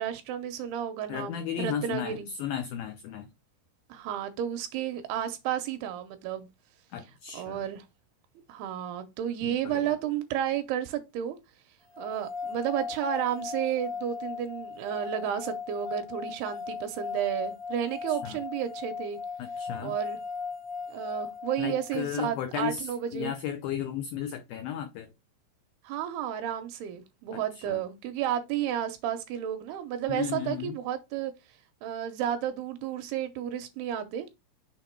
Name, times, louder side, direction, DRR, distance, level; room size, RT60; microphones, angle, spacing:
voice 1, 0.0-2.3 3.9-6.5 7.3-7.9 8.5-11.4 12.0-19.2 19.8-20.2 20.9-23.3 25.8-31.3 31.8-34.3, right 10 dB, 80° right, 2.5 m, -32 dB
voice 2, 1.1-3.3 6.9-7.6 9.4-9.9 18.1-18.4 19.4-19.9 21.6-25.1 27.3-27.8 30.1-30.8, left 9 dB, 90° left, 2.0 m, -34 dB
sound 1, 11.9-22.1, left 5 dB, 10° right, 2.4 m, -38 dB
6.5 x 3.8 x 4.4 m
omnidirectional pair, 5.0 m